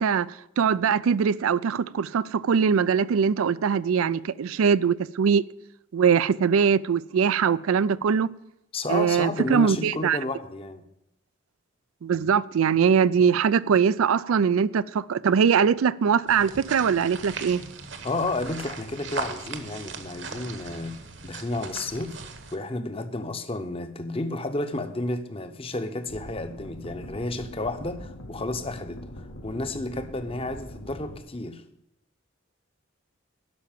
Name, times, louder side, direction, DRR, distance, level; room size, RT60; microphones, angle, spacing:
voice 1, 0.0-5.4 5.9-8.3 8.9-10.2 12.0-17.6, right 6 dB, 80° right, 0.4 m, -22 dB
voice 2, 8.7-10.8 18.0-21.0 21.2-22.2 22.5-29.0 29.4-31.6, left 2 dB, 25° left, 0.8 m, -31 dB
sound 1, 16.3-22.6, right 4 dB, 55° right, 1.2 m, -38 dB
sound 2, 26.1-31.2, left 1 dB, 85° left, 1.5 m, -42 dB
12.0 x 5.8 x 9.0 m
head